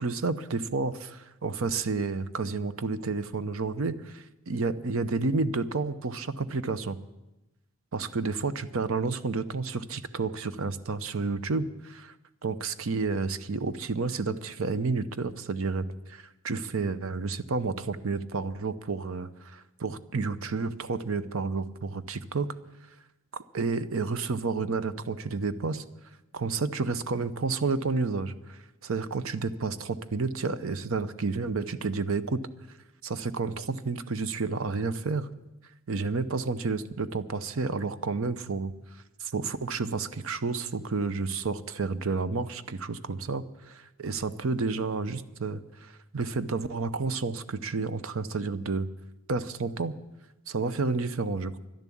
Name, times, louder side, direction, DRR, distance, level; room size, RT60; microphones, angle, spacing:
voice 1, 0.0-7.0 7.9-12.1 12.4-22.5 23.3-25.8 26.3-32.4 33.0-35.3 35.9-38.7 39.2-48.9 49.3-50.0 50.5-51.6, right 4 dB, 65° right, 13 dB, 0.7 m, -30 dB
12.0 x 11.0 x 8.4 m, 0.99 s
head